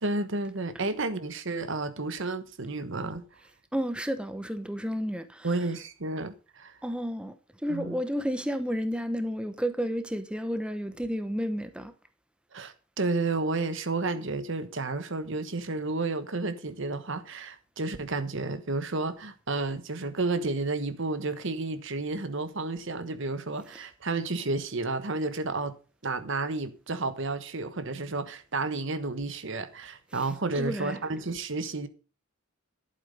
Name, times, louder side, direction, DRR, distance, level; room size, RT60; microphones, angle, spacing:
voice 1, 0.0-3.2 5.4-6.7 7.7-8.0 12.5-25.7 26.0-31.9, right 3 dB, 60° right, 1.3 m, -31 dB
voice 2, 3.7-5.5 6.8-7.4 7.6-11.9 30.1-30.3 30.6-31.0, equal, 5° right, 0.9 m, -31 dB
11.5 x 8.3 x 5.3 m
head